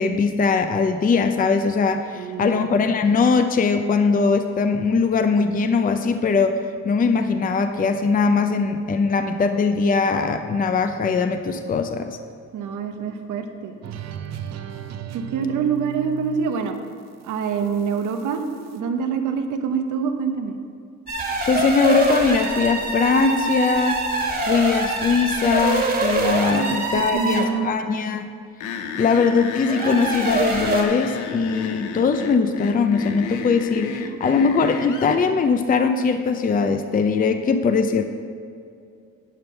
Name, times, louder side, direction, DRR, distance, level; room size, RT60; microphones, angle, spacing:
voice 1, 0.0-6.6 6.8-12.2 21.5-24.0 24.5-28.3 29.0-38.0, left 5 dB, 30° left, 7 dB, 0.5 m, -21 dB
voice 2, 2.2-2.6 12.5-13.7 15.1-16.8 17.2-18.4 18.7-20.5 26.5-27.8, right 6 dB, 80° right, 6 dB, 1.0 m, -26 dB
sound 1, 13.8-18.8, right 10 dB, 60° right, 0.6 m, -37 dB
sound 2, 21.1-27.6 29.6-30.8, right 2 dB, 30° right, 1.7 m, -24 dB
sound 3, 28.6-35.2, left 6 dB, 90° left, 0.7 m, -32 dB
10.5 x 5.4 x 5.8 m, 2.4 s
cardioid pair, 90°, 30 cm